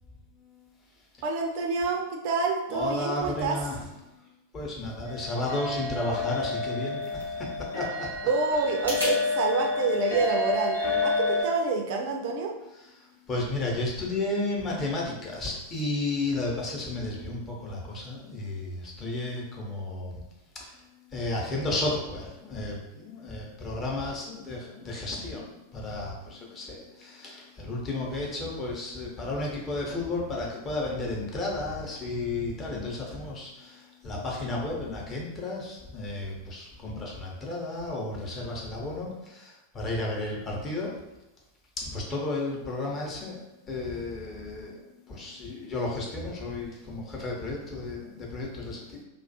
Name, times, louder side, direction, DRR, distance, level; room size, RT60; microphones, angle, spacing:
voice 1, 1.2-3.6 8.2-12.5, right 4 dB, 50° right, 2 dB, 0.3 m, -27 dB
voice 2, 2.7-3.8 4.5-8.1 13.0-20.2 20.6-40.9 41.8-43.4 43.7-49.0, left 2 dB, 25° left, -3 dB, 0.7 m, -33 dB
sound 1, 5.0-11.4, left 3 dB, 60° left, 0.8 m, -30 dB
sound 2, 6.5-9.2, equal, 85° left, 0.9 m, -39 dB
2.3 x 2.3 x 2.6 m, 0.99 s
figure-of-eight pair, 90°, 0 cm